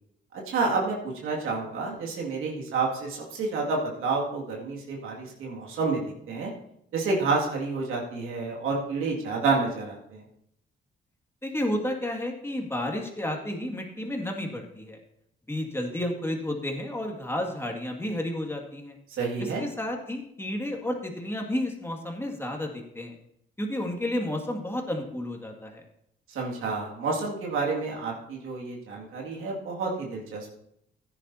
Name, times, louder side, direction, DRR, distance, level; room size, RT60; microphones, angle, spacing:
voice 1, 0.5-1.0 1.2-6.5 6.9-10.2 19.2-19.7 26.3-30.5, right 4 dB, 90° right, -2 dB, 2.2 m, -29 dB
voice 2, 11.4-15.0 15.5-19.0 19.4-23.1 23.6-25.8, left 1 dB, 10° left, 2 dB, 2.1 m, -31 dB
15.0 x 10.0 x 2.8 m, 0.75 s
cardioid pair, 85°, 21 cm